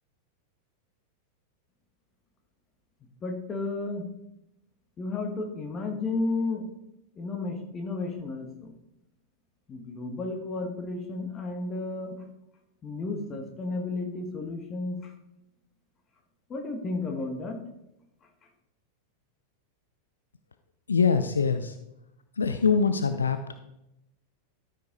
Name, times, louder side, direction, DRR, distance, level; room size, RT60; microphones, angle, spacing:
voice 1, 3.2-4.0 5.0-6.6 7.2-8.7 9.7-12.2 12.8-15.1 16.5-17.6, left 3 dB, 25° left, 4 dB, 1.6 m, -32 dB
voice 2, 20.9-21.7 22.4-23.4, left 5 dB, 75° left, 9 dB, 0.5 m, -23 dB
13.0 x 5.5 x 4.0 m, 0.88 s
figure-of-eight pair, 90°, 0 cm